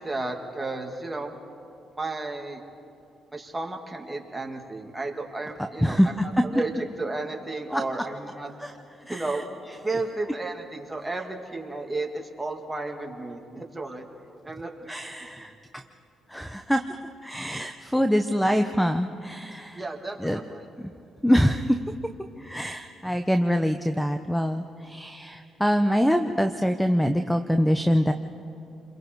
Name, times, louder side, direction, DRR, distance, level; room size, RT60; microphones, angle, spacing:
voice 1, 0.0-1.4 1.9-2.6 3.3-8.5 9.1-9.4 9.8-14.1 14.4-15.0 15.4-15.5 19.7-20.6, right 2 dB, 15° right, 2 dB, 2.5 m, -33 dB
voice 2, 14.9-15.8 16.3-16.8 17.2-19.8 20.2-20.4 21.2-21.8 22.4-28.1, equal, 5° left, 8 dB, 0.8 m, -24 dB
29.5 x 22.5 x 4.7 m, 2.7 s
cardioid pair, 90°, 0 cm